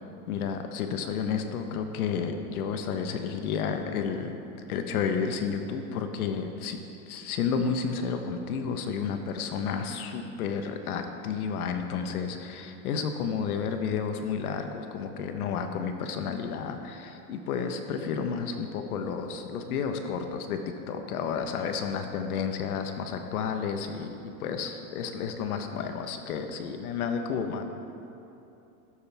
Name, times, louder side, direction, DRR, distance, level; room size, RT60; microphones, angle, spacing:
voice 1, 0.3-4.4 4.7-6.8 7.1-20.6 20.9-27.6, left 6 dB, 70° left, 6 dB, 1.3 m, -31 dB
13.5 x 11.5 x 3.5 m, 2.9 s
supercardioid pair, 155°, 45 cm